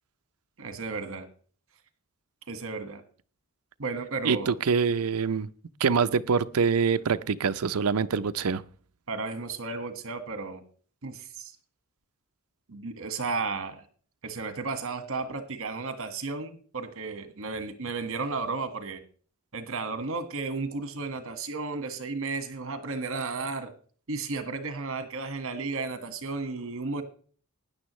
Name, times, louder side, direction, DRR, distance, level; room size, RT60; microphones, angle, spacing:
voice 1, 0.6-1.3 2.5-3.0 3.8-4.5 9.1-10.6 11.0-11.5 12.7-13.8 14.2-19.0 19.5-23.7 24.1-27.0, right 4 dB, 65° right, 1.6 m, -33 dB
voice 2, 4.2-5.5 5.8-8.6, right 5 dB, 90° right, 0.6 m, -25 dB
16.5 x 10.5 x 3.1 m
head